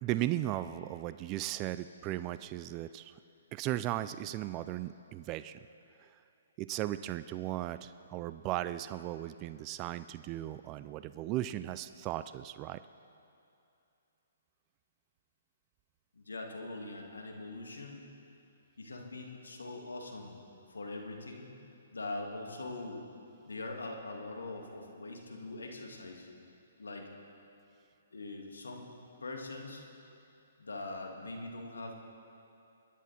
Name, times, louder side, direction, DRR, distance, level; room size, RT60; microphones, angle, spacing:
voice 1, 0.0-3.2 3.5-5.7 6.0-6.2 6.6-12.8, right 14 dB, 30° right, 13 dB, 0.3 m, -36 dB
voice 2, 16.1-18.0 18.8-20.4 20.7-21.5 21.9-23.0 23.4-26.3 26.8-27.1 28.1-28.9 29.2-29.8 30.6-31.9, left 2 dB, 85° left, 2 dB, 2.2 m, -42 dB
22.0 x 10.5 x 4.3 m, 2.6 s
hypercardioid pair, 135°, 0 cm